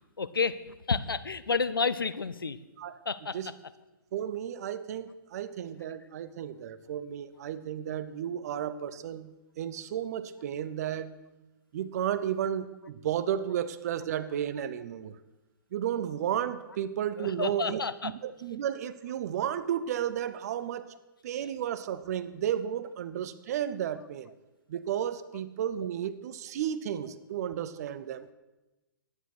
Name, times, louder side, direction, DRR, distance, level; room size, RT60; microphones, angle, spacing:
voice 1, 0.2-2.6 3.1-3.4 17.2-18.1, left 5 dB, 80° left, 15 dB, 0.6 m, -30 dB
voice 2, 4.1-9.3 9.6-11.1 11.7-15.2 15.7-20.9 21.2-24.3 24.7-28.3, right 10 dB, 45° right, 14 dB, 0.7 m, -33 dB
11.0 x 9.7 x 6.2 m, 1.1 s
figure-of-eight pair, 120°, 12 cm